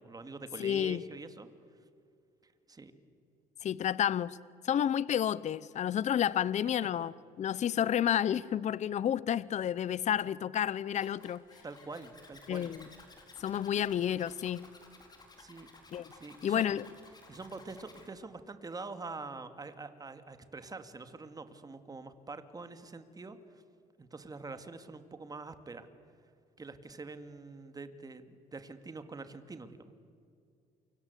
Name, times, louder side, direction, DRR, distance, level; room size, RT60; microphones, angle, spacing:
voice 1, 0.0-1.5 2.4-2.9 11.6-12.7 15.4-15.7 16.1-16.8 17.3-23.6 24.0-25.9 26.6-29.9, right 3 dB, 20° right, 9 dB, 2.3 m, -45 dB
voice 2, 0.6-1.0 3.6-4.4 4.6-7.1 7.4-11.4 12.5-12.8 13.4-14.6 15.9-16.1 16.4-16.8, left 10 dB, 45° left, 19 dB, 0.7 m, -30 dB
Zipper (clothing), 10.9-18.1, left 2 dB, 25° left, 4.6 m, -56 dB
28.5 x 24.5 x 8.2 m, 2.4 s
cardioid pair, 110°, 17 cm